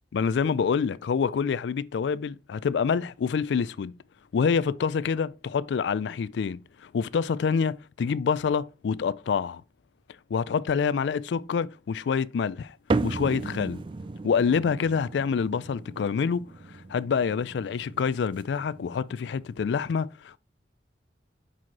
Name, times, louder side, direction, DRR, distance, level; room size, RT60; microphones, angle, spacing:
voice 1, 0.1-3.9 4.3-9.6 10.3-12.8 13.0-13.8 14.2-16.4 16.9-20.4, left 6 dB, 75° left, 0.3 m, -27 dB
sound 1, 12.9-19.6, right 3 dB, 25° right, 0.3 m, -35 dB
5.6 x 5.0 x 4.6 m
head